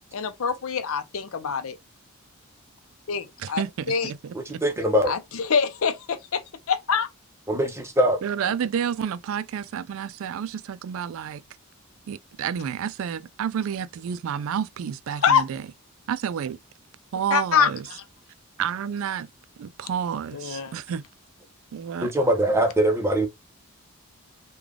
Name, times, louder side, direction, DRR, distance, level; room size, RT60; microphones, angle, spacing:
voice 1, 0.1-1.8 3.1-3.6 3.9-4.1 5.1-5.2 5.5-6.4 6.7-7.1 15.2-15.4 17.3-17.7 20.3-20.7, left 6 dB, 75° left, 0.6 m, -24 dB
voice 2, 3.4-4.6 8.2-11.4 12.1-15.7 16.1-16.6 17.1-17.9 18.6-19.3 19.6-21.0 21.7-22.1, right 8 dB, 70° right, 0.3 m, -30 dB
voice 3, 4.3-5.1 7.5-8.2 22.0-23.3, right 1 dB, 10° right, 0.7 m, -22 dB
3.3 x 2.3 x 3.6 m
head